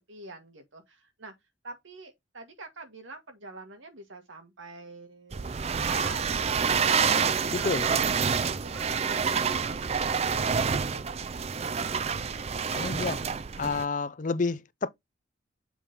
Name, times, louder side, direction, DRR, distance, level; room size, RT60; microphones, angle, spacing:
voice 1, 0.1-1.3 1.6-7.1 7.5-9.9 10.3-11.1, right 3 dB, 80° right, 2.0 m, -46 dB
sound 1, 5.3-13.8, right 6 dB, 30° right, 0.4 m, -28 dB
voice 2, 7.5-7.9 12.7-13.2 13.6-14.9, left 4 dB, 40° left, 0.5 m, -29 dB
6.9 x 3.7 x 4.3 m
head